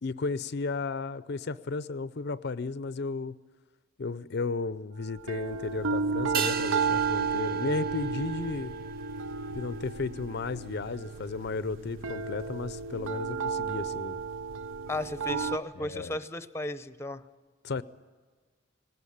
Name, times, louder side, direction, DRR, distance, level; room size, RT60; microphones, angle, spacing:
voice 1, 0.0-3.4 4.0-8.7 9.5-14.2 15.8-16.2 17.6-17.8, left 3 dB, 55° left, 15 dB, 0.5 m, -34 dB
sound 1, 5.2-15.6, right 5 dB, 75° right, 0.7 m, -33 dB
sound 2, 6.3-11.1 11.3-11.4, right 7 dB, 50° right, 0.9 m, -38 dB
voice 2, 14.9-17.2, left 1 dB, 15° left, 12 dB, 0.7 m, -34 dB
19.5 x 18.0 x 8.6 m, 1.5 s
head